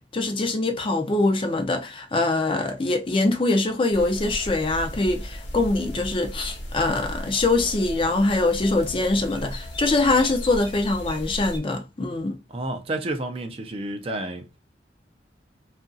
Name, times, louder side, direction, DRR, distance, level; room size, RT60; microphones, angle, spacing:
voice 1, 0.1-12.4, left 2 dB, 30° left, 0.4 m, -23 dB
sound 1, 3.9-11.6, equal, 80° left, 1.0 m, -36 dB
voice 2, 12.5-14.5, right 2 dB, 30° right, 0.4 m, -30 dB
2.8 x 2.4 x 2.5 m
head